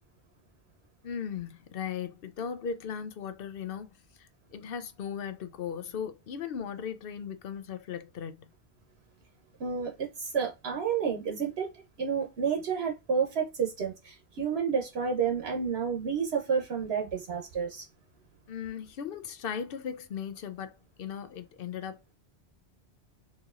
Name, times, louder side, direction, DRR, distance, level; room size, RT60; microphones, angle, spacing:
voice 1, 1.0-3.9 4.2-8.5 18.5-22.1, left 7 dB, 65° left, 0.7 m, -37 dB
voice 2, 9.6-17.9, right 6 dB, 70° right, 1.1 m, -30 dB
4.2 x 2.8 x 2.4 m
omnidirectional pair, 1.1 m